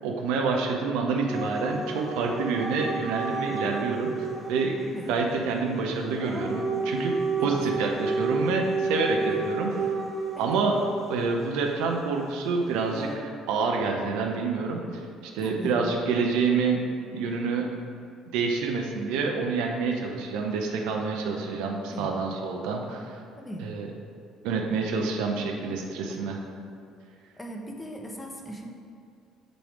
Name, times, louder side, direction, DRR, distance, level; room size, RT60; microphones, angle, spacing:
voice 1, 0.0-4.1 4.5-4.8 5.1-7.1 7.4-9.7 10.4-10.8 11.1-15.0 15.3-16.8 17.1-17.7 18.3-23.2 23.6-23.9 24.4-26.4, right 4 dB, 60° right, 2 dB, 0.5 m, -27 dB
Dog / Siren, 1.3-4.6 6.0-11.2 12.8-13.1, right 3 dB, 10° right, 0.9 m, -31 dB
voice 2, 7.4-7.8 9.1-9.5 10.3-10.6 15.4-15.8 21.8-22.1 23.4-23.7 26.1-26.5 27.4-28.7, equal, 15° left, 2 dB, 0.8 m, -39 dB
6.0 x 3.4 x 4.8 m, 2.4 s
figure-of-eight pair, 50°, 0 cm